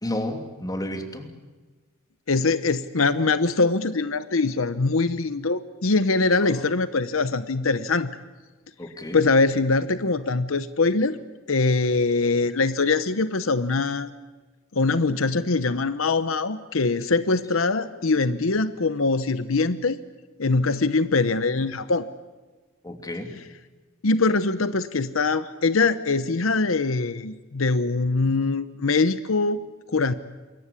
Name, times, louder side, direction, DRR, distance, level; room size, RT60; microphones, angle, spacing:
voice 1, 0.0-1.3 8.8-9.2 22.8-23.3, left 1 dB, 20° left, 6 dB, 2.8 m, -31 dB
voice 2, 2.3-8.1 9.1-11.2 11.5-14.1 14.7-20.0 20.4-22.1 24.0-29.6 29.9-30.1, left 3 dB, 80° left, 13 dB, 0.9 m, -23 dB
27.5 x 22.5 x 8.4 m, 1.3 s
head